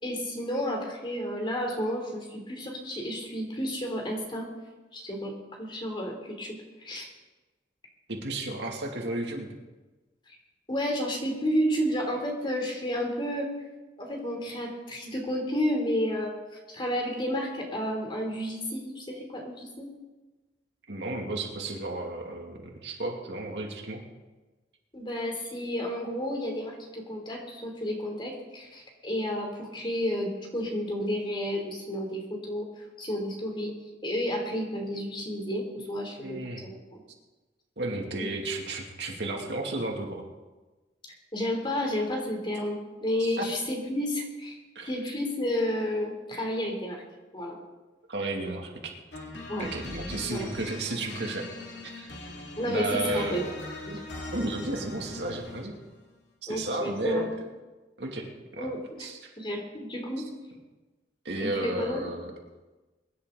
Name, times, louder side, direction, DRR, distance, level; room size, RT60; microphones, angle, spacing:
voice 1, 0.0-4.5 4.9-5.3 5.6-7.1 10.3-10.4 10.7-13.5 14.0-16.3 16.7-19.9 24.9-32.7 33.0-33.7 34.0-37.0 38.2-38.3 41.3-44.6 44.8-47.0 47.3-47.6 49.5-49.7 50.2-50.5 52.6-53.4 53.9-54.0 56.5-57.3 58.6-59.1 59.4-60.3 61.4-62.0, equal, 30° left, 1 dB, 3.2 m, -31 dB
voice 2, 8.1-9.5 20.9-24.0 36.2-36.6 37.8-40.3 43.2-43.5 44.7-44.9 48.1-48.9 49.6-51.5 52.0-52.2 52.6-53.4 54.3-55.7 56.4-57.3 58.0-58.7 59.0-59.3 61.2-62.3, right 2 dB, 75° right, 0 dB, 2.5 m, -33 dB
sound 1, 49.1-55.8, left 2 dB, 80° left, 2.8 m, -41 dB
23.0 x 11.0 x 3.9 m, 1.2 s
head